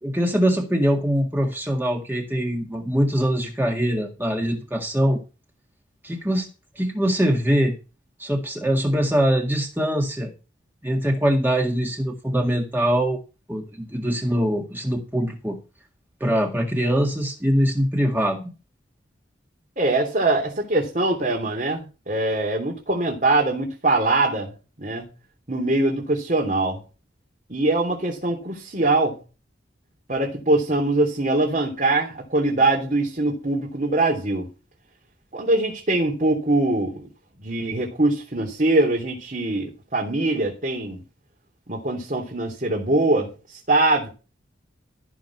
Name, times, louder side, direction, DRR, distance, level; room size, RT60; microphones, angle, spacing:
voice 1, 0.0-5.2 6.0-6.5 6.8-7.8 8.2-10.3 10.8-13.2 13.5-15.6 16.2-18.4, equal, 10° right, 1 dB, 1.9 m, -23 dB
voice 2, 19.8-24.5 24.8-25.1 25.5-26.8 27.5-29.2 30.1-34.5 35.3-37.1 37.4-41.0 41.7-44.1, right 2 dB, 45° right, -2 dB, 3.1 m, -22 dB
14.5 x 6.2 x 6.0 m, 0.32 s
head